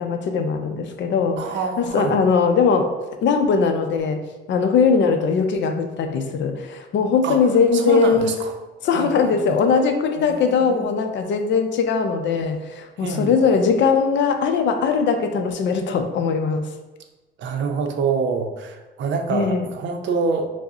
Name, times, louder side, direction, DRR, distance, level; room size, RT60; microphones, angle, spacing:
voice 1, 0.0-2.9 3.2-4.2 4.5-8.3 8.8-16.7 19.3-19.7, left 5 dB, 65° left, 6 dB, 0.5 m, -20 dB
voice 2, 1.4-2.2 7.2-7.4 7.7-8.5 8.9-9.6 10.2-10.9 13.0-13.3 17.4-20.5, right 5 dB, 70° right, 5 dB, 0.5 m, -26 dB
4.8 x 2.1 x 2.7 m, 1.2 s
cardioid pair, 90°, 20 cm